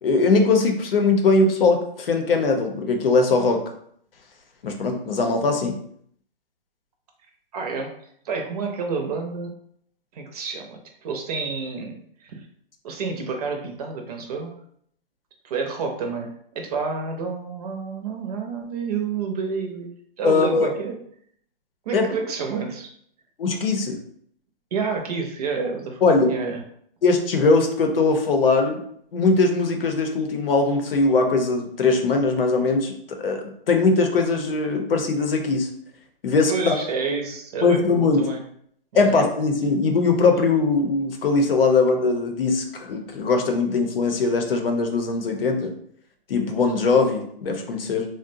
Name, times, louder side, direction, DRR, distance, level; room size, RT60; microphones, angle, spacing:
voice 1, 0.0-3.6 4.6-5.8 20.2-20.7 21.9-22.1 23.4-24.0 26.0-26.3 27.0-28.8 29.1-35.7 36.2-36.7 37.6-38.2 38.9-45.7 46.3-48.1, left 3 dB, 75° left, 4 dB, 0.7 m, -20 dB
voice 2, 7.5-7.9 8.2-9.5 10.1-12.5 12.8-14.6 15.4-19.9 20.2-21.0 21.9-22.9 24.7-26.6 36.5-38.4 38.9-39.2, right 5 dB, 40° right, 3 dB, 0.6 m, -29 dB
3.9 x 2.1 x 2.6 m, 0.66 s
hypercardioid pair, 140°, 29 cm